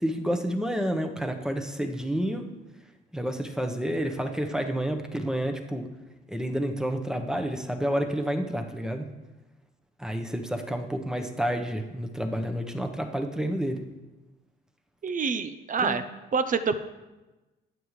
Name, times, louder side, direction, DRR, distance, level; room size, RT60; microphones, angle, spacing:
voice 1, 0.0-2.5 3.1-5.9 6.3-9.0 10.0-13.8 15.8-16.0, equal, 5° right, 5 dB, 1.1 m, -29 dB
voice 2, 15.0-16.0 16.3-16.8, right 5 dB, 40° right, 11 dB, 0.8 m, -26 dB
12.5 x 8.9 x 3.3 m, 1.1 s
cardioid pair, 90°, 20 cm